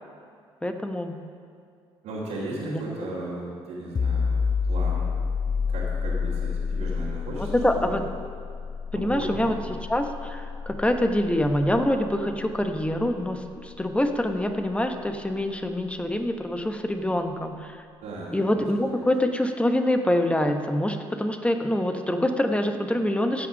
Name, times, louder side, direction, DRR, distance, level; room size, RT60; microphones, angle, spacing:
voice 1, 0.6-1.2 2.6-2.8 7.6-8.0 8.9-9.6 9.9-17.8 18.3-23.5, left 1 dB, 10° left, 6 dB, 1.1 m, -25 dB
voice 2, 2.0-5.1 5.4-8.0 8.9-9.4 18.0-18.3 18.6-18.7 19.0-19.1, right 2 dB, 70° right, -9 dB, 2.8 m, -36 dB
sound 1, 3.9-15.4, left 5 dB, 30° left, 0.4 m, -30 dB
15.5 x 6.0 x 5.4 m, 2.2 s
hypercardioid pair, 55°, 12 cm